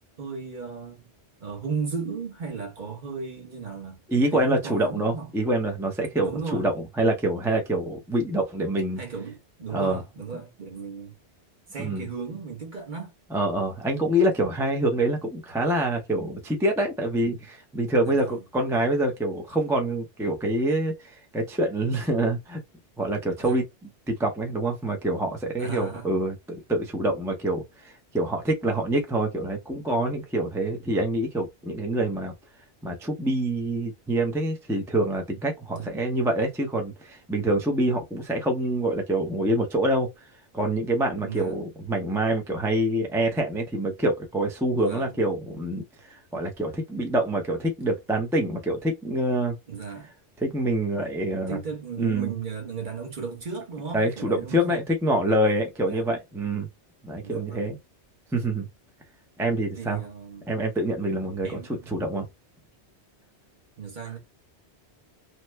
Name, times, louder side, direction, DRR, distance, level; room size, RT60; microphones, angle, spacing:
voice 1, 0.2-1.1 1.4-4.0 4.3-5.3 6.2-6.7 9.0-11.2 11.7-13.1 18.0-18.4 23.4-23.6 25.6-26.1 30.4-30.5 35.7-36.0 41.2-41.6 44.7-45.2 49.7-50.1 51.5-54.8 55.8-56.1 57.2-57.8 59.8-60.4 61.4-62.0 63.8-64.2, right 5 dB, 45° right, 1.1 m, -35 dB
voice 2, 4.1-9.0 9.7-10.0 11.8-12.1 13.3-22.6 23.0-23.7 24.1-32.3 32.8-40.1 40.5-49.6 50.4-51.6 52.0-52.3 53.9-56.7 57.0-57.8 58.3-58.7 59.4-60.0 60.5-61.6 61.9-62.2, right 1 dB, 5° right, 0.3 m, -26 dB
2.9 x 2.1 x 3.2 m
omnidirectional pair, 1.2 m